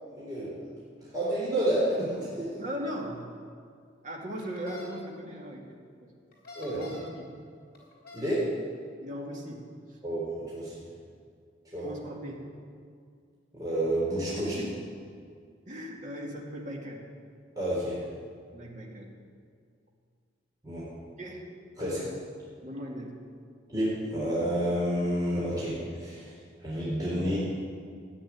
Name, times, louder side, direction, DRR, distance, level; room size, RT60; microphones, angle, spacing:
voice 1, 0.2-0.7 1.0-2.5 6.6-6.8 8.1-8.4 10.0-10.3 10.5-10.7 11.7-11.9 13.5-14.5 17.6-18.0 20.6-20.8 21.8-22.0 23.7-26.3 26.6-27.4, right 1 dB, 20° right, -8 dB, 3.7 m, -29 dB
voice 2, 2.6-3.3 4.0-6.1 6.7-7.3 9.0-10.0 11.8-12.5 14.4-15.0 15.7-17.0 18.5-19.1 21.2-21.5 21.8-22.2 22.6-23.2, equal, 40° right, -2 dB, 2.4 m, -39 dB
sound 1, 4.4-4.9 6.3-7.1 7.7-8.3, left 2 dB, 55° left, 4.1 m, -45 dB
13.5 x 9.2 x 9.6 m, 2.2 s
head